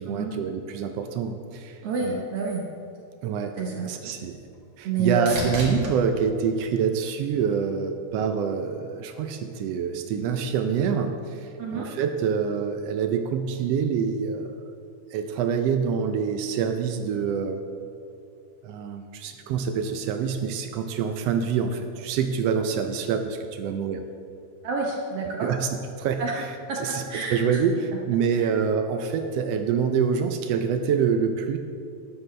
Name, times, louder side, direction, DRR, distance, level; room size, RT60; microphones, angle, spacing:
voice 1, 0.0-2.2 3.2-3.5 3.8-4.4 4.8-14.5 15.1-17.6 18.6-24.0 25.4-26.5 26.8-31.6, right 6 dB, 90° right, 6 dB, 1.4 m, -26 dB
voice 2, 1.8-2.7 3.6-3.9 4.8-5.6 11.6-11.9 24.6-25.5 26.2-26.3 26.7-26.8 27.1-27.6 28.4-28.5, right 4 dB, 65° right, -1 dB, 1.7 m, -28 dB
sound 1, 4.2-7.7 8.2-8.9 16.7-16.8, right 2 dB, 45° right, 2.1 m, -38 dB
12.5 x 12.0 x 3.3 m, 2.4 s
omnidirectional pair, 3.6 m